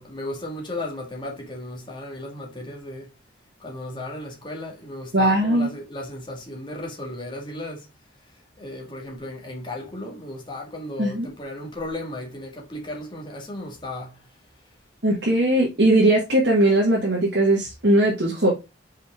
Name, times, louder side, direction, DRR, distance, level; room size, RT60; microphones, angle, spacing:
voice 1, 0.0-3.1 3.6-7.9 8.6-14.2, left 1 dB, 25° left, 2.0 m, -35 dB
voice 2, 5.1-5.7 11.0-11.3 15.0-18.5, right 1 dB, 65° right, 1.8 m, -19 dB
5.5 x 5.0 x 3.7 m
head